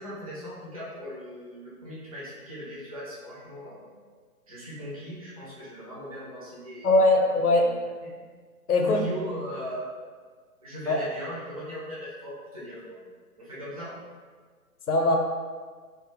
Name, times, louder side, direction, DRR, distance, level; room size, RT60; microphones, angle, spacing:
voice 1, 0.0-4.0 4.5-7.1 7.6-7.8 8.0-8.1 8.7-9.9 10.6-13.0 13.4-14.0, equal, 25° right, -9 dB, 0.6 m, -38 dB
voice 2, 6.8-7.7 8.7-9.0 10.9-11.0 14.9-15.2, left 2 dB, 75° left, 2 dB, 0.6 m, -21 dB
2.4 x 2.3 x 2.8 m, 1.5 s
figure-of-eight pair, 145°, 45 cm